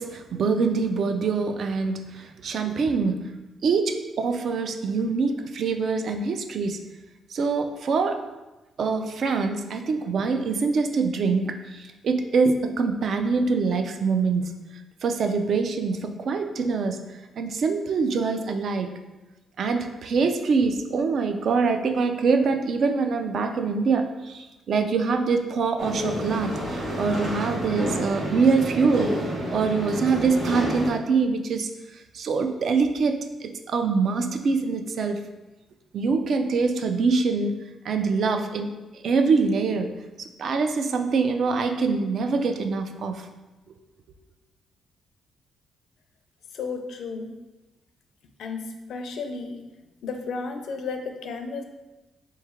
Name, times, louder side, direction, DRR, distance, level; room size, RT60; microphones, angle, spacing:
voice 1, 0.0-3.3 3.6-6.8 7.3-8.2 8.8-14.5 15.0-17.0 17.4-18.9 19.6-29.1 29.5-31.7 32.1-35.2 35.9-37.5 37.8-39.9 40.2-43.3, right 4 dB, 55° right, 6 dB, 0.3 m, -24 dB
sound 1, 25.8-30.9, equal, 80° right, 0.9 m, -29 dB
voice 2, 46.5-47.3 48.4-48.6 48.9-49.6 50.0-51.7, left 4 dB, 65° left, 5 dB, 0.4 m, -33 dB
3.6 x 3.1 x 3.5 m, 1.1 s
cardioid pair, 140°, 0 cm